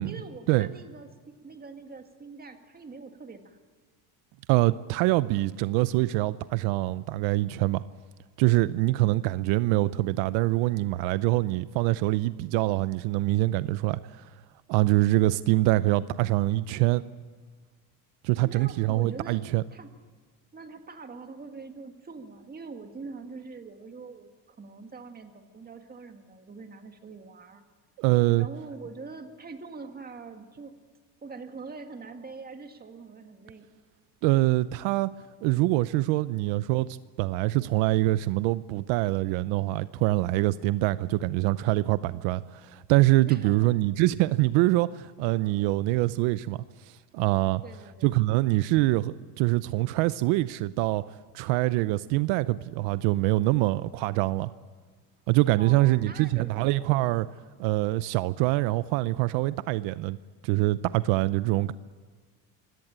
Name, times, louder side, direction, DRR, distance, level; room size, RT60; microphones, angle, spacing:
voice 1, 0.0-3.6 18.4-19.4 19.7-19.9 20.5-27.6 28.4-30.8 31.2-33.7 43.3-43.8 45.4-45.7 47.6-48.1 55.6-57.2, right 4 dB, 20° right, 2.0 m, -44 dB
voice 2, 4.5-7.8 8.4-14.3 14.7-17.0 18.2-19.6 28.0-28.5 34.2-35.1 35.4-36.9 37.2-46.6 46.9-47.6 48.0-51.0 51.3-54.5 55.3-57.3 57.6-60.2 60.4-61.7, right 18 dB, 75° right, 0.7 m, -24 dB
25.0 x 17.0 x 8.9 m
cardioid pair, 125°, 45 cm